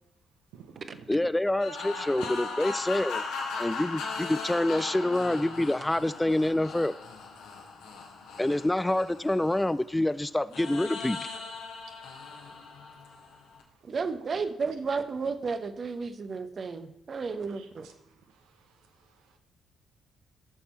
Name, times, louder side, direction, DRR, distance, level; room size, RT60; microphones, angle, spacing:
voice 1, 0.5-1.3 12.0-13.4 13.7-13.9 17.5-19.4, right 7 dB, 70° right, 5 dB, 1.1 m, -56 dB
voice 2, 1.1-3.2 3.6-6.9 8.4-11.2, left 1 dB, 10° left, 16 dB, 0.4 m, -27 dB
sound 1, 1.6-9.9 10.5-13.6, left 4 dB, 70° left, 1.8 m, -38 dB
voice 3, 13.8-17.9, right 4 dB, 45° right, 10 dB, 1.0 m, -32 dB
14.5 x 7.0 x 4.5 m, 0.94 s
hypercardioid pair, 40°, 0 cm